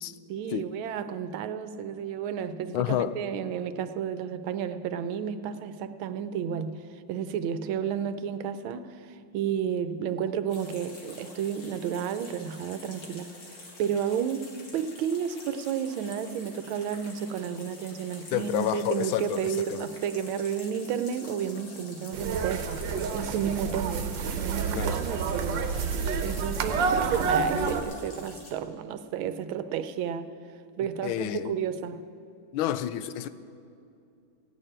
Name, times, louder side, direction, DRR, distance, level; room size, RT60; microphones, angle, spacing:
voice 1, 0.3-6.7 7.1-13.3 13.8-22.6 23.1-25.7 26.2-30.3 30.8-32.0, right 8 dB, 85° right, 1.5 m, -32 dB
voice 2, 2.7-3.2 18.3-19.8 24.7-25.0 31.0-31.6 32.5-33.3, left 12 dB, 85° left, 1.4 m, -29 dB
sound 1, 10.5-28.5, left 2 dB, 65° left, 2.7 m, -48 dB
sound 2, 22.1-27.8, right 5 dB, 70° right, 1.5 m, -29 dB
17.0 x 6.6 x 8.8 m
omnidirectional pair, 2.2 m